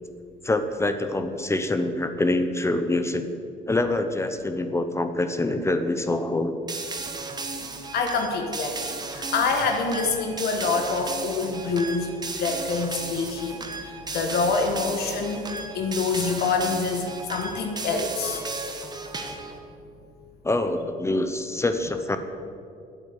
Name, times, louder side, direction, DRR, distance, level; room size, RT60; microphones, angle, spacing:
voice 1, 0.4-3.3 3.7-6.5 20.4-22.2, left 2 dB, 15° left, 8 dB, 0.7 m, -25 dB
sound 1, 6.7-19.6, right 3 dB, 25° right, 1.2 m, -35 dB
voice 2, 7.9-18.4, left 4 dB, 70° left, 4 dB, 1.3 m, -26 dB
8.8 x 8.4 x 8.1 m, 2.5 s
cardioid pair, 110°, 17 cm